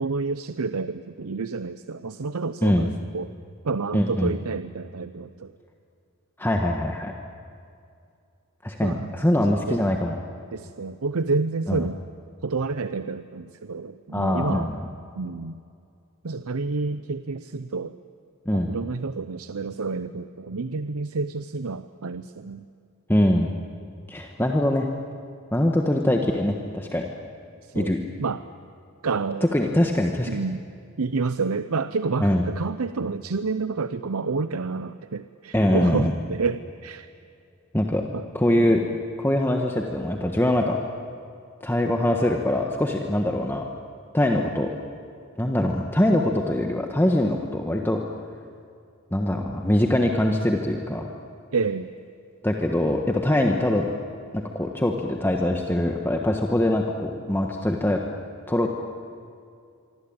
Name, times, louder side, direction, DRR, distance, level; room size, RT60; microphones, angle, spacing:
voice 1, 0.0-3.3 3.6-5.5 8.8-9.1 9.7-9.8 10.5-12.0 12.4-14.7 15.1-15.6 16.2-18.0 18.5-22.6 27.7-28.4 29.0-29.4 30.3-30.6 31.0-37.1 38.1-38.2 51.5-51.9, right 4 dB, 80° right, 12 dB, 0.7 m, -29 dB
voice 2, 3.9-4.4 6.4-7.1 8.6-10.2 11.7-11.8 14.1-14.9 18.4-18.7 23.1-23.5 24.1-24.9 25.5-27.1 27.7-28.0 29.4-30.3 32.2-32.4 35.5-36.1 37.7-38.0 38.3-38.8 39.2-40.8 41.6-43.6 44.1-44.7 45.4-48.0 49.1-51.1 52.4-53.9 54.3-58.0 58.5-58.7, left 1 dB, 10° left, 2 dB, 1.4 m, -23 dB
25.5 x 24.0 x 8.9 m, 2.5 s
head